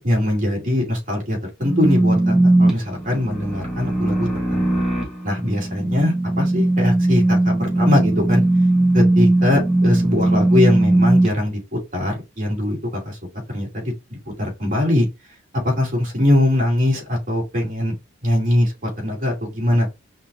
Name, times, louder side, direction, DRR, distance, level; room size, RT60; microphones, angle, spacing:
voice 1, 0.0-4.8 5.2-8.4 8.9-13.2 13.5-13.9 14.4-15.1 15.6-17.9 18.2-19.9, left 1 dB, 40° right, 2.5 m, -21 dB
sound 1, 1.6-11.3, right 2 dB, 5° right, 1.7 m, -18 dB
5.6 x 3.0 x 2.6 m
head